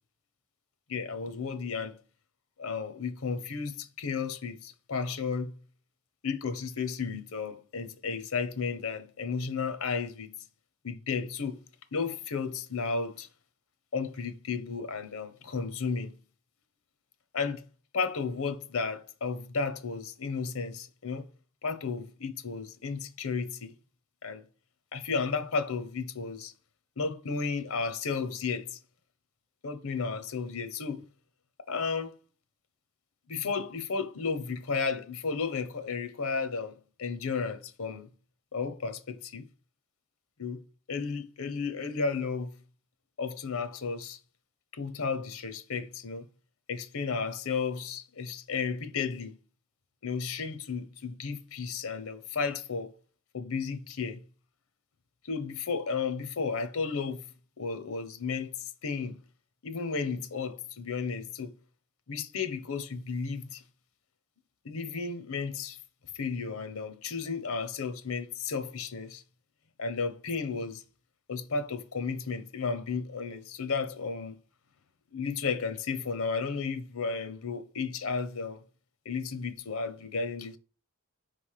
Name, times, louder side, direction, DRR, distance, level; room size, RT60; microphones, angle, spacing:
voice 1, 0.9-2.0 2.6-5.5 6.2-10.3 10.8-11.6 11.9-13.3 13.9-16.2 17.3-17.6 17.9-21.3 21.6-23.7 24.2-24.4 24.9-26.5 27.0-28.8 29.6-31.0 31.7-32.1 33.3-38.1 38.5-39.5 40.4-40.6 40.9-42.5 43.2-44.2 44.7-46.2 46.7-49.4 50.0-52.9 53.3-54.2 55.2-57.3 57.6-59.2 59.6-61.5 62.1-63.6 64.6-65.8 66.1-69.2 69.8-70.8 71.3-74.4 75.1-78.6 79.0-80.6, left 5 dB, 70° left, 0.8 m, -33 dB
5.2 x 3.4 x 5.6 m
head